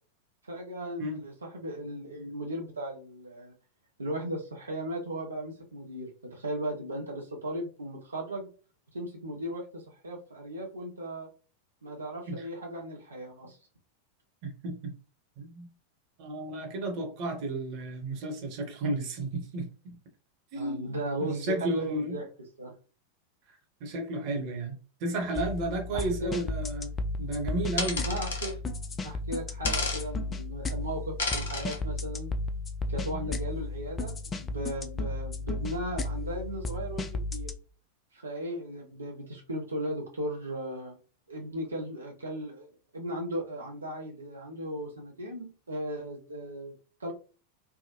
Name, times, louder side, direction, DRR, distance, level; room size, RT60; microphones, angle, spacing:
voice 1, 0.4-3.5 4.0-8.5 8.9-11.3 11.8-13.6 20.5-22.2 22.6-22.7 25.9-26.4 28.0-28.5 29.0-32.3 32.9-37.5 38.1-41.0 41.3-42.7 42.9-47.1, right 1 dB, 75° right, -1 dB, 0.7 m, -37 dB
voice 2, 14.4-15.0 15.4-15.7 16.2-20.0 20.5-22.2 23.8-28.1 33.1-33.4, right 1 dB, 45° right, 3 dB, 1.0 m, -33 dB
sound 1, 25.4-37.5, left 2 dB, 20° left, 0.4 m, -34 dB
sound 2, 27.8-28.5 29.6-30.0 31.2-31.8, left 3 dB, 60° left, 0.8 m, -31 dB
3.4 x 2.1 x 2.8 m, 0.35 s
figure-of-eight pair, 90°, 0 cm